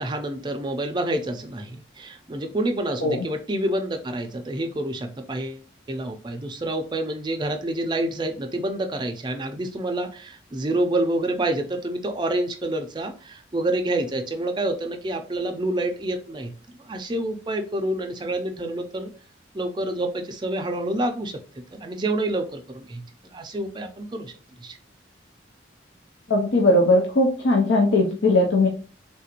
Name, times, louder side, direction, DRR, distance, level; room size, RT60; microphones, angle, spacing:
voice 1, 0.0-5.6 5.9-16.5 16.8-19.1 19.5-23.0 23.3-24.3 24.6-24.8, right 1 dB, 25° right, 5 dB, 0.4 m, -28 dB
voice 2, 26.3-28.7, left 2 dB, 75° left, 0 dB, 0.6 m, -19 dB
3.6 x 2.4 x 2.9 m, 0.38 s
head